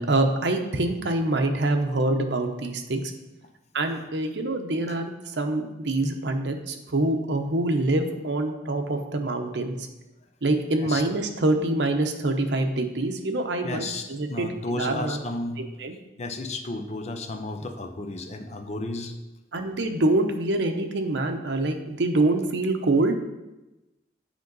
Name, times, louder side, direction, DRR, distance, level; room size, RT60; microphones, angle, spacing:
voice 1, 0.0-3.0 3.7-9.7 10.4-15.2 15.8-16.0 19.5-23.2, right 2 dB, 80° right, 5 dB, 0.8 m, -25 dB
voice 2, 13.6-15.6 16.2-19.1, left 2 dB, 40° left, 6 dB, 0.7 m, -33 dB
8.1 x 5.2 x 4.0 m, 1.0 s
head